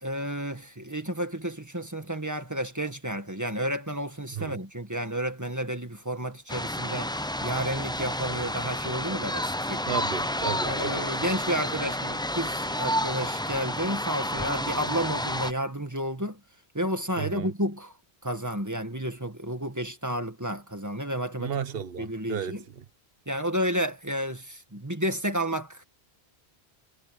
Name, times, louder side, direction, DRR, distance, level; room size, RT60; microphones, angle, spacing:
voice 1, 0.0-9.9 10.6-16.4 16.7-17.9 18.2-21.5 22.0-22.6 23.3-25.8, right 1 dB, 15° right, 1.9 m, -31 dB
sound 1, 6.5-15.5, left 1 dB, 5° left, 0.5 m, -30 dB
voice 2, 9.9-11.1 17.2-17.5 21.4-22.8, right 7 dB, 65° right, 1.3 m, -34 dB
omnidirectional pair, 1.1 m